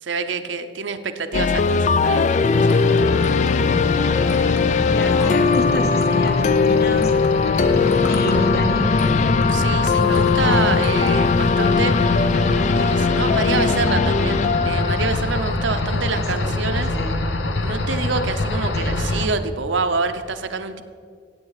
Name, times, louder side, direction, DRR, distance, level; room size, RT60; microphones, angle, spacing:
voice 1, 0.0-2.8 9.5-12.0 12.7-16.9 17.6-20.8, right 4 dB, 80° right, 8 dB, 0.8 m, -27 dB
sound 1, 1.3-16.2, left 5 dB, 40° left, 0.3 m, -20 dB
sound 2, 1.8-11.2, left 2 dB, 70° left, 1.8 m, -45 dB
sound 3, 2.5-19.3, left 2 dB, 90° left, 1.0 m, -24 dB
voice 2, 4.4-8.9 15.8-16.6 16.9-17.3 18.7-19.1, left 1 dB, 55° left, 4 dB, 1.4 m, -30 dB
16.0 x 8.1 x 4.9 m, 2.2 s
head